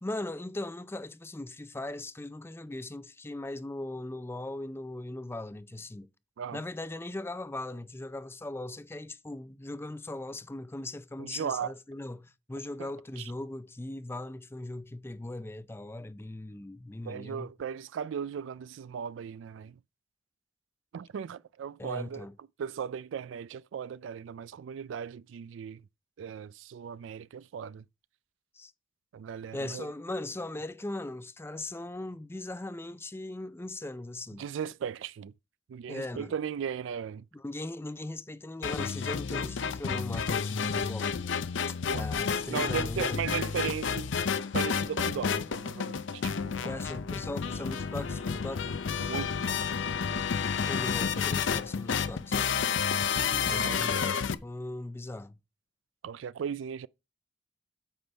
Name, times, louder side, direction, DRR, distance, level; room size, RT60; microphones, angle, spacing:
voice 1, 0.0-6.1 6.5-17.5 21.8-22.3 28.5-28.7 29.5-34.5 35.9-36.3 37.3-41.1 41.9-43.4 46.6-48.8 50.7-52.6 53.5-55.3, left 2 dB, 15° left, 0.5 m, -39 dB
voice 2, 11.2-11.7 12.8-12.9 13.2-13.3 17.0-19.8 20.9-25.8 26.2-27.8 29.1-29.9 34.4-35.3 35.7-37.3 41.9-42.1 42.5-44.1 44.5-46.7 49.1-49.7 50.1-50.2 53.5-53.9 56.0-56.9, right 7 dB, 90° right, 0.3 m, -37 dB
sound 1, 38.6-54.3, left 6 dB, 85° left, 0.6 m, -30 dB
9.2 x 6.7 x 3.4 m
head